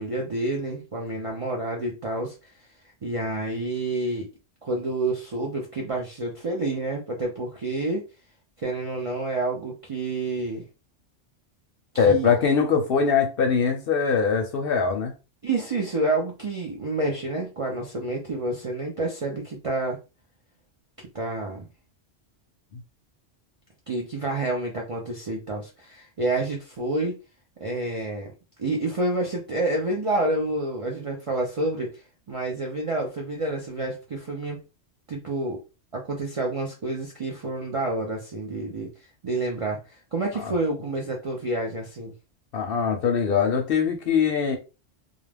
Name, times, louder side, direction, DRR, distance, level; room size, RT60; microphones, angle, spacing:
voice 1, 0.0-2.5 3.0-4.3 4.6-8.0 8.6-10.6 12.1-12.3 15.4-20.0 21.1-21.7 23.9-27.1 27.6-28.3 28.6-31.9 32.3-34.6 35.1-35.6 35.9-38.9 39.2-42.1, right 2 dB, 50° right, 0.4 m, -28 dB
voice 2, 12.0-15.1 22.7-22.8 40.4-40.5 42.5-44.6, left 6 dB, 60° left, 0.7 m, -22 dB
2.4 x 2.0 x 3.3 m
omnidirectional pair, 1.2 m